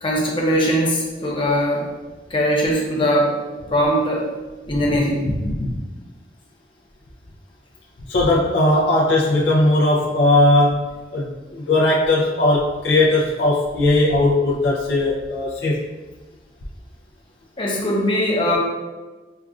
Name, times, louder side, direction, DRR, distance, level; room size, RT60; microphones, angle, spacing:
voice 1, 0.0-1.8 2.3-3.3 3.7-4.3 4.7-5.3 17.6-18.6, equal, 30° left, -3 dB, 0.7 m, -20 dB
voice 2, 5.3-5.8 8.1-15.8, left 2 dB, 70° left, -4 dB, 0.5 m, -18 dB
5.3 x 2.3 x 2.4 m, 1.2 s
head